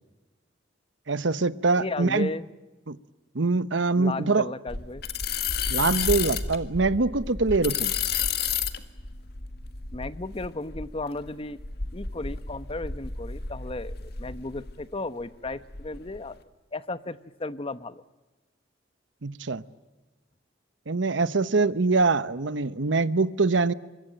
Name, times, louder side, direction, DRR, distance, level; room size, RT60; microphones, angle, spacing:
voice 1, 1.1-2.3 2.9-3.0 3.3-4.5 5.7-7.9 19.2-19.6 20.9-23.7, right 3 dB, 90° right, 15 dB, 1.0 m, -24 dB
voice 2, 1.8-2.5 4.0-5.0 9.9-11.6 11.9-16.4 16.7-18.0, left 2 dB, 30° left, 14 dB, 0.9 m, -35 dB
sound 1, 4.7-14.8 15.2-16.2, left 6 dB, 60° left, 1.9 m, -31 dB
25.0 x 22.5 x 8.9 m, 1.2 s
head